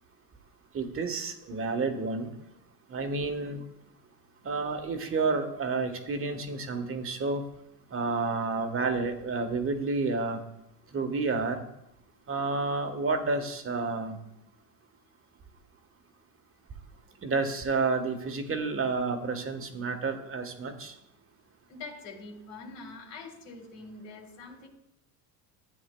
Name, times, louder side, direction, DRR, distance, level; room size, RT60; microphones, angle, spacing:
voice 1, 0.7-2.3 2.9-3.6 4.4-7.4 7.9-10.4 10.9-11.6 12.3-14.2 17.2-20.9, right 3 dB, 25° right, 7 dB, 1.3 m, -30 dB
voice 2, 21.7-24.7, left 3 dB, 70° left, -1 dB, 3.0 m, -44 dB
14.0 x 9.2 x 2.3 m, 0.80 s
supercardioid pair, 100°, 49 cm